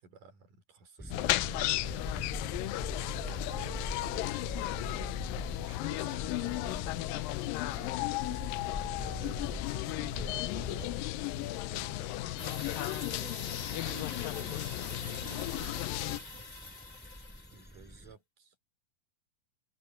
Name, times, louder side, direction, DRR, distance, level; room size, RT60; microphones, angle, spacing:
voice 1, 0.0-4.8 5.6-7.3 8.8-12.7 17.5-18.6, right 5 dB, 65° right, 5.6 m, -54 dB
sound 1, 1.0-18.1, equal, ahead, 6.3 m, -44 dB
sound 2, 1.1-16.2, left 18 dB, 80° left, 2.3 m, -35 dB
voice 2, 7.7-8.2 9.2-9.4 13.2-13.4 13.7-16.6, right 7 dB, 40° right, 2.4 m, -52 dB
sound 3, 12.4-17.8, left 3 dB, 35° left, 0.6 m, -45 dB
omnidirectional pair, 4.1 m